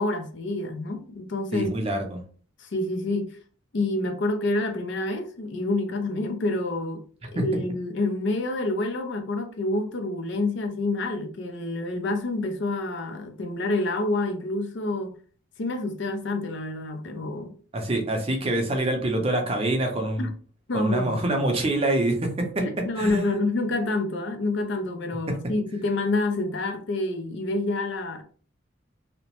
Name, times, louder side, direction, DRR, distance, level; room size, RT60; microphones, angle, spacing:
voice 1, 0.0-1.7 2.6-3.4 3.7-7.0 7.3-15.1 15.6-17.5 20.2-20.3 20.7-21.2 22.6-28.2, left 2 dB, 60° left, 0.5 m, -28 dB
voice 2, 1.5-2.2 7.4-7.5 17.7-20.3 20.7-22.6 23.0-23.3, right 1 dB, 30° right, 0.5 m, -25 dB
2.8 x 2.0 x 2.9 m
head